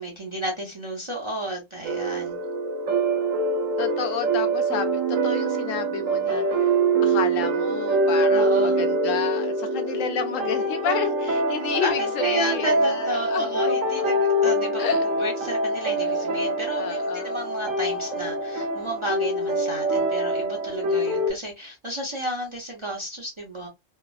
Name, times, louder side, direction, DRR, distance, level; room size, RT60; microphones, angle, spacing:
voice 1, 0.0-2.4 8.3-8.8 11.8-14.8 15.2-23.7, right 1 dB, 35° right, 0.5 m, -32 dB
sound 1, 1.8-21.3, right 2 dB, 85° right, 1.1 m, -24 dB
voice 2, 3.8-6.8 7.0-13.8 14.8-15.1 16.8-17.5, left 7 dB, 80° left, 1.0 m, -31 dB
3.3 x 2.0 x 2.2 m
omnidirectional pair, 1.3 m